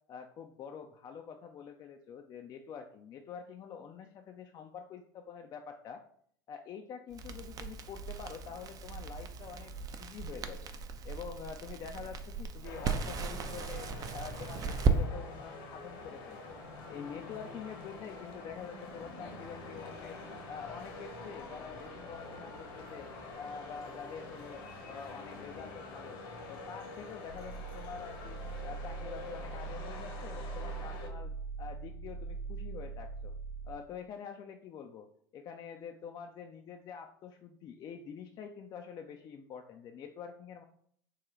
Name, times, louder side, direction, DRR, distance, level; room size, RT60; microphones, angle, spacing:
voice 1, 0.1-6.0 6.5-9.7 10.0-10.7 11.0-13.9 14.1-16.6 16.9-20.2 20.5-23.1 23.4-24.6 24.9-26.2 26.5-28.4 28.6-31.3 31.6-33.3 33.7-35.1 35.3-40.6, left 7 dB, 35° left, 5 dB, 0.3 m, -46 dB
Crackle, 7.1-15.0, right 5 dB, 30° right, 0.4 m, -36 dB
sound 1, 12.6-31.1, left 3 dB, 55° left, 0.9 m, -46 dB
sound 2, 27.3-33.7, right 4 dB, 75° left, 0.6 m, -42 dB
3.7 x 2.2 x 3.1 m, 0.63 s
hypercardioid pair, 80°, 12 cm